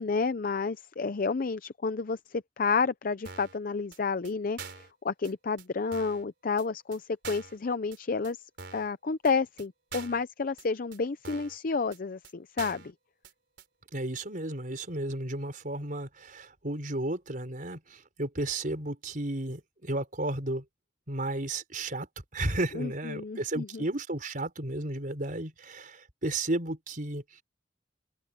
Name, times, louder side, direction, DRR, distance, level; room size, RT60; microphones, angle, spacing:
voice 1, 0.0-8.4 8.7-12.9 22.7-23.8, left 4 dB, 50° left, 0.5 m, -30 dB
sound 1, 3.2-3.6 3.9-4.0 4.2-4.3 4.6-4.9 5.2-5.3 5.6-5.7 5.9-6.2 6.6-6.7 6.9-7.0 7.2-7.6 7.9-8.0 8.2-8.3 8.6-8.9 9.2-9.3 9.6-9.7 9.9-10.2 10.6-10.7 10.9-11.0 11.2-11.6 11.9-12.0 12.2-12.3 12.6-12.9 13.2-13.3 13.6-13.7, right 5 dB, 65° right, 4.2 m, -44 dB
voice 2, 13.9-20.6 21.1-22.1 22.3-27.4, right 2 dB, 50° right, 4.9 m, -33 dB
open air
head